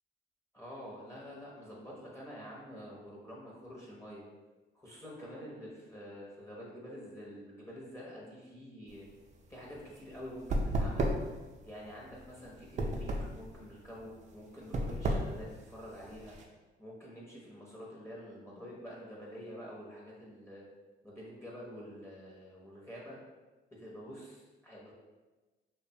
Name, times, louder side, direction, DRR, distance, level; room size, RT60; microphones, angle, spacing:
voice 1, 0.5-4.2 4.7-9.1 9.5-11.1 11.6-16.3 16.8-20.6 21.0-23.2 23.7-24.9, equal, 15° left, -5 dB, 0.6 m, -47 dB
sound 1, 8.9-16.4, right 1 dB, 35° right, 0.4 m, -34 dB
2.3 x 2.1 x 2.7 m, 1.2 s
cardioid pair, 90°, 20 cm